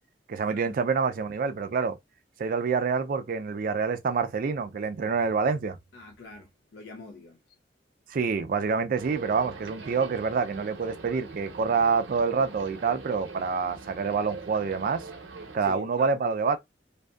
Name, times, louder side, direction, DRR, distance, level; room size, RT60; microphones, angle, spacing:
voice 1, 0.3-2.0 2.4-5.8 8.1-15.1 15.5-16.6, right 5 dB, 50° right, 0.3 m, -27 dB
voice 2, 5.9-7.4 15.6-16.1, left 3 dB, 70° left, 0.5 m, -45 dB
sound 1, 9.0-15.6, right 3 dB, 75° right, 0.7 m, -44 dB
2.6 x 2.4 x 2.2 m
head